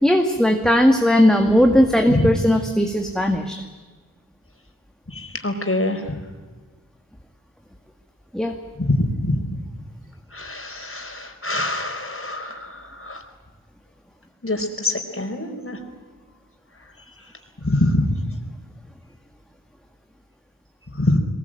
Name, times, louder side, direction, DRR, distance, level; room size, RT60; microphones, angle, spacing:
voice 1, 0.0-3.6 8.3-8.6, equal, ahead, 4 dB, 2.1 m, -17 dB
voice 2, 5.1-6.0 8.8-9.4 10.3-12.6 13.0-13.2 14.4-15.8 17.6-18.1 21.0-21.2, left 1 dB, 40° left, 4 dB, 4.7 m, -24 dB
22.0 x 21.0 x 9.0 m, 1.4 s
wide cardioid pair, 45°, 33 cm